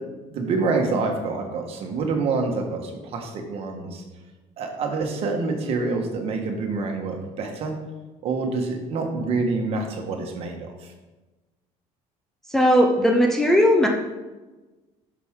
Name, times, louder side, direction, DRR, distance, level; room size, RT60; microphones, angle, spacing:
voice 1, 0.0-4.0 4.6-7.7 8.2-10.9, right 3 dB, 50° right, 3 dB, 1.5 m, -27 dB
voice 2, 12.5-13.9, equal, 5° left, 0 dB, 0.7 m, -17 dB
11.0 x 6.1 x 3.7 m, 1.2 s
cardioid pair, 155°, 13 cm